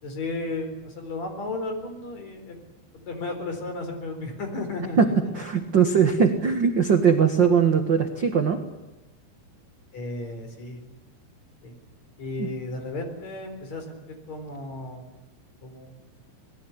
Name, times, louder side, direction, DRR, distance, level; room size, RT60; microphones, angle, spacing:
voice 1, 0.0-2.6 2.9-5.1 9.9-11.0 11.6-11.7 12.2-15.1 15.6-16.0, left 2 dB, 45° left, 6 dB, 5.1 m, -34 dB
voice 2, 5.3-8.6 12.4-12.5, right 6 dB, 60° right, 6 dB, 1.1 m, -20 dB
25.5 x 19.5 x 9.9 m, 1.0 s
omnidirectional pair, 4.5 m